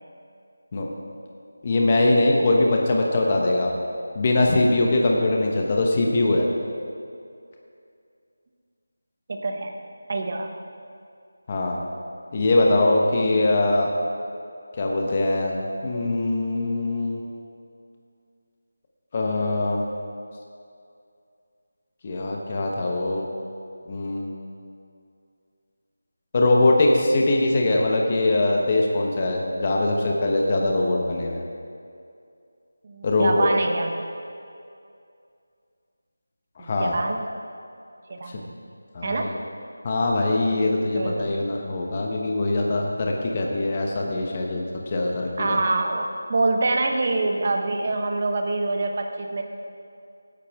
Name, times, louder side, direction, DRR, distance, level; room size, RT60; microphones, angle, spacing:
voice 1, 1.6-3.7 4.1-6.5 11.5-11.8 12.3-13.9 14.8-17.2 19.1-19.8 22.0-23.3 23.9-24.4 26.3-31.4 33.0-33.5 36.6-36.9 38.9-39.3 39.8-45.6, left 2 dB, 25° left, 0 dB, 1.1 m, -22 dB
voice 2, 9.3-9.7 10.1-10.5 15.3-15.7 32.8-33.9 36.6-37.3 38.1-38.5 39.0-39.3 40.9-41.4 45.4-49.4, right 2 dB, 35° right, 4 dB, 1.0 m, -26 dB
17.5 x 10.0 x 3.6 m, 2.4 s
figure-of-eight pair, 175°, 0 cm